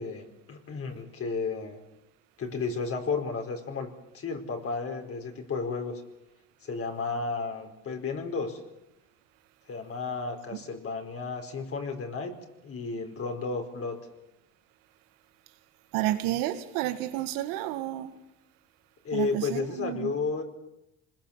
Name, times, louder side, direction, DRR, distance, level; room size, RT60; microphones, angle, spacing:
voice 1, 0.0-1.8 2.4-6.0 6.6-8.6 9.7-12.3 12.6-14.0 19.0-20.4, left 4 dB, 40° left, 4.7 m, -33 dB
voice 2, 15.9-18.1 19.1-20.1, right 14 dB, 80° right, 2.0 m, -30 dB
26.5 x 21.0 x 7.4 m
supercardioid pair, 95°, 33 cm